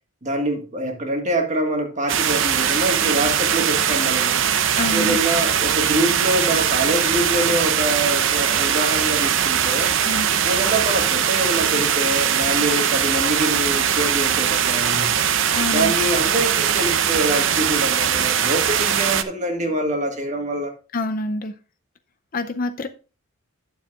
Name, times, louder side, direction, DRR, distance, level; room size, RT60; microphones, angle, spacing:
voice 1, 0.2-4.5 4.9-9.9 10.4-15.1 15.7-20.7, right 1 dB, 35° right, 1.6 m, -25 dB
sound 1, 2.1-19.2, right 8 dB, 60° right, 0.7 m, -20 dB
voice 2, 4.8-5.2 10.0-10.3 15.6-15.9 20.9-21.5 22.3-22.9, left 2 dB, 40° left, 0.5 m, -26 dB
11.0 x 7.3 x 2.4 m
head